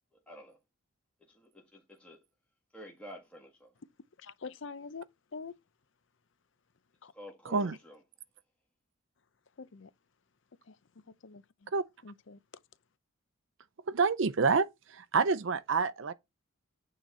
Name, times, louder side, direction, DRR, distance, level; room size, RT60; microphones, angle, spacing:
voice 1, 0.1-0.6 1.2-2.2 2.7-3.7 7.1-8.0, equal, 5° left, 1.6 m, -50 dB
voice 2, 4.2-5.0 5.3-5.5 7.0-7.1 9.6-9.9 10.7-10.8 11.2-11.7 12.0-12.4, left 5 dB, 55° left, 0.6 m, -45 dB
voice 3, 13.9-16.1, right 4 dB, 60° right, 0.5 m, -28 dB
9.2 x 3.8 x 4.2 m
head